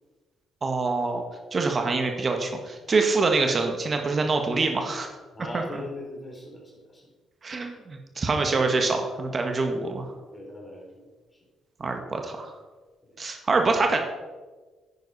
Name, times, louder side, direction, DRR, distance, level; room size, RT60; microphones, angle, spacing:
voice 1, 0.6-1.2 1.5-5.1 5.5-5.6 7.4-10.1 11.8-12.5 13.2-14.0, right 3 dB, 40° right, 4 dB, 1.6 m, -25 dB
voice 2, 5.3-7.1 10.3-11.1 13.0-13.2 13.4-13.6, left 2 dB, 25° left, -2 dB, 3.5 m, -40 dB
10.5 x 9.1 x 4.3 m, 1.3 s
supercardioid pair, 65°, 0 cm